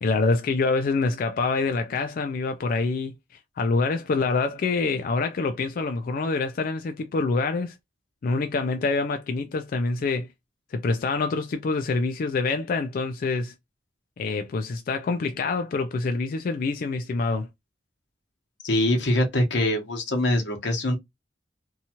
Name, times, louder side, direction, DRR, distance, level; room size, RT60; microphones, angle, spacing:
voice 1, 0.0-3.2 3.6-7.7 8.2-10.3 10.7-13.5 14.2-17.5, left 3 dB, 50° left, 0.3 m, -26 dB
voice 2, 18.6-21.0, left 1 dB, 90° left, 0.9 m, -23 dB
2.7 x 2.3 x 2.8 m
head